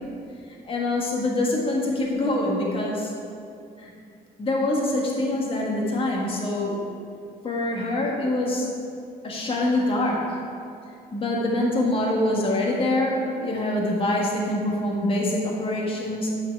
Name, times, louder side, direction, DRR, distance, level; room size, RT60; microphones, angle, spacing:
voice 1, 0.6-3.1 3.8-3.9 4.4-6.8 7.4-8.7 9.2-10.4 11.1-16.4, left 1 dB, 30° left, -2 dB, 1.7 m, -25 dB
9.9 x 6.0 x 4.6 m, 2.5 s
cardioid pair, 110°, 17 cm